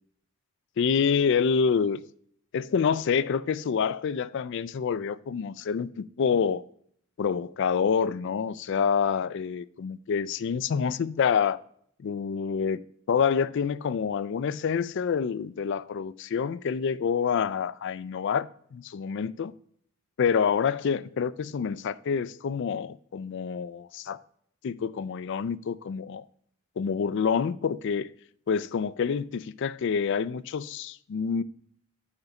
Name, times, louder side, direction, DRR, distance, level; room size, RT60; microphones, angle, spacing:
voice 1, 0.8-2.0 2.5-6.6 7.2-11.6 12.0-12.8 13.1-19.5 20.2-24.2 24.6-26.2 26.8-28.1 28.5-31.4, left 6 dB, 55° left, 0.3 m, -27 dB
7.0 x 4.0 x 5.3 m
head